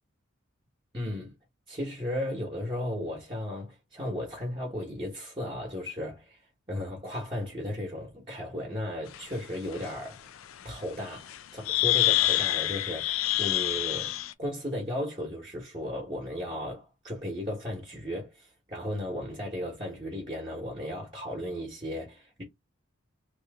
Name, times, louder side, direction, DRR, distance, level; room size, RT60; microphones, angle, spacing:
voice 1, 0.9-1.3 1.7-6.4 6.7-10.4 10.6-14.1 14.4-22.4, left 1 dB, 25° right, 1.2 m, -35 dB
sound 1, 9.1-9.2 9.7-9.9 11.3-11.4 11.7-14.3, left 16 dB, 70° left, 0.4 m, -26 dB
2.9 x 2.5 x 3.5 m
head